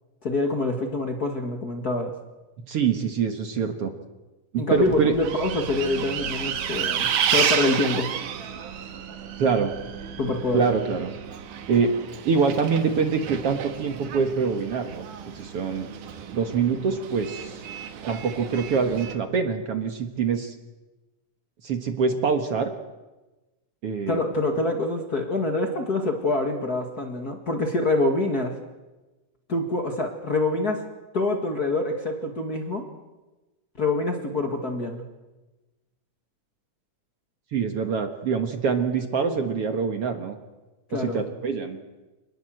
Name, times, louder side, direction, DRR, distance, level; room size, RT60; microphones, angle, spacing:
voice 1, 0.2-2.1 4.6-8.1 10.2-10.6 24.1-28.6 29.5-30.8 31.1-32.9 33.8-35.0 40.9-41.2, left 2 dB, 35° left, 3 dB, 2.0 m, -26 dB
voice 2, 2.7-3.9 4.5-5.1 9.4-9.7 10.5-11.1 11.7-11.9 12.3-15.0 15.4-15.9 16.3-17.6 18.1-20.6 21.6-22.7 23.8-24.2 37.5-40.4 41.0-41.8, right 5 dB, 55° right, 6 dB, 2.1 m, -25 dB
Bus, 4.7-19.2, right 8 dB, 80° right, 3.0 m, -31 dB
27.5 x 20.0 x 7.7 m, 1.1 s
omnidirectional pair, 3.6 m